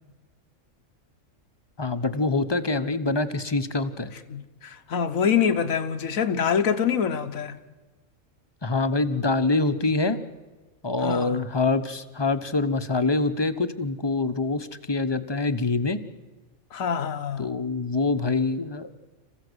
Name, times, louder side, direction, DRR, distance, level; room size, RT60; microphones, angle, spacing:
voice 1, 1.8-4.1 8.6-10.2 10.8-16.0 17.4-18.9, left 3 dB, 20° left, 0.9 m, -25 dB
voice 2, 4.3-7.6 11.0-11.4 16.7-17.5, left 7 dB, 90° left, 1.5 m, -25 dB
27.5 x 15.5 x 8.0 m
omnidirectional pair, 1.4 m